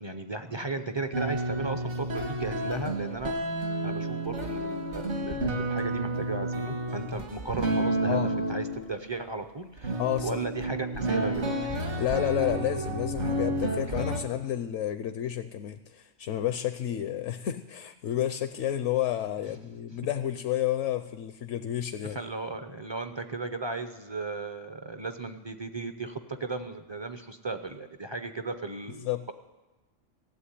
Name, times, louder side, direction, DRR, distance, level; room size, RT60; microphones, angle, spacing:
voice 1, 0.0-3.4 3.8-8.2 8.5-11.5 22.0-29.3, right 3 dB, 30° right, 8 dB, 0.5 m, -35 dB
sound 1, 1.1-8.9 9.8-14.2, right 1 dB, 70° right, 2.0 m, -30 dB
voice 2, 10.0-10.4 12.0-22.2 29.0-29.2, left 11 dB, 75° left, 11 dB, 1.0 m, -30 dB
15.5 x 8.0 x 10.0 m, 1.1 s
omnidirectional pair, 1.3 m